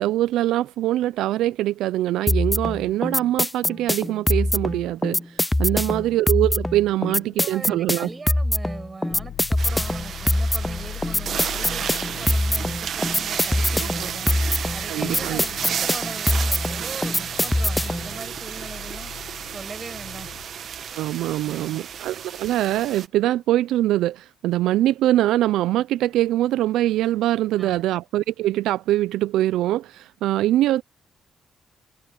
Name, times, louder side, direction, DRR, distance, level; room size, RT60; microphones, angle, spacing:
voice 1, 0.0-8.1 14.9-15.4 20.9-30.8, right 14 dB, 90° right, 0.4 m, -23 dB
sound 1, 2.3-18.1, left 1 dB, 10° left, 0.4 m, -24 dB
voice 2, 5.6-6.1 7.1-14.3 14.7-19.1 19.5-20.3 21.4-21.9 27.6-27.9, right 4 dB, 30° right, 7.6 m, -40 dB
sound 2, 9.1-20.5, left 12 dB, 80° left, 7.3 m, -41 dB
sound 3, 9.6-23.1, right 8 dB, 60° right, 1.1 m, -32 dB
cardioid pair, 90°, 0 cm